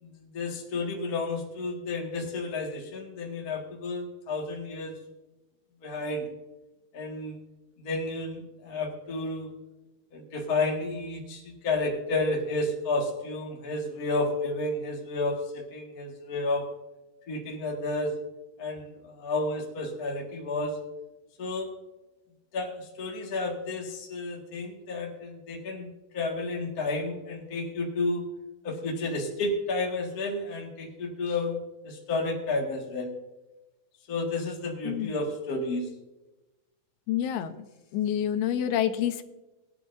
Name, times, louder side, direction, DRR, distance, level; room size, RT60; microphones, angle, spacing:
voice 1, 0.0-4.9 5.8-6.3 6.9-7.4 7.8-9.5 10.1-16.6 17.3-18.1 18.6-20.8 21.4-21.7 22.5-25.9 26.1-28.2 28.6-31.6 31.8-33.1 34.1-35.9, left 2 dB, 40° left, -1 dB, 1.4 m, -31 dB
voice 2, 37.1-37.6 37.9-39.2, left 10 dB, 90° left, 8 dB, 2.7 m, -28 dB
19.0 x 9.1 x 2.6 m, 1.0 s
omnidirectional pair, 4.3 m